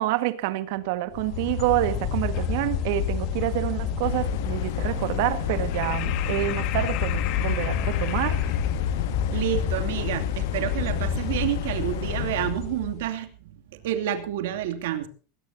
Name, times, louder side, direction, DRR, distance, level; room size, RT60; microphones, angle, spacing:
voice 1, 0.0-8.6, right 15 dB, 55° right, 1.7 m, -27 dB
sound 1, 1.1-13.0, left 8 dB, 40° left, 1.9 m, -28 dB
sound 2, 4.0-12.5, left 14 dB, 85° left, 0.7 m, -35 dB
voice 2, 9.3-13.3 13.8-15.1, right 12 dB, 80° right, 2.6 m, -29 dB
20.0 x 19.0 x 2.8 m
supercardioid pair, 175°, 0 cm